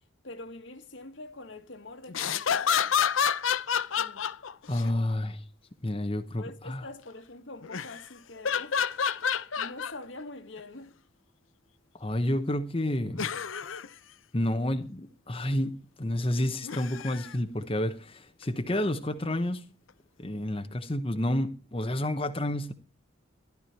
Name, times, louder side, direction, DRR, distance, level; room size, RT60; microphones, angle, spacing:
voice 1, 0.2-2.9 4.0-4.3 6.4-8.8 9.6-10.9, left 2 dB, 70° left, 2.0 m, -45 dB
sound 1, 2.1-4.9 7.6-8.0 8.4-9.9 10.6-10.7 13.1-13.9 16.6-17.3 18.4-18.5, left 7 dB, 85° left, 0.7 m, -29 dB
voice 2, 4.7-5.4 5.8-6.9 12.0-13.3 14.3-19.6 20.2-22.7, left 1 dB, 30° left, 1.0 m, -30 dB
15.5 x 12.0 x 4.5 m
head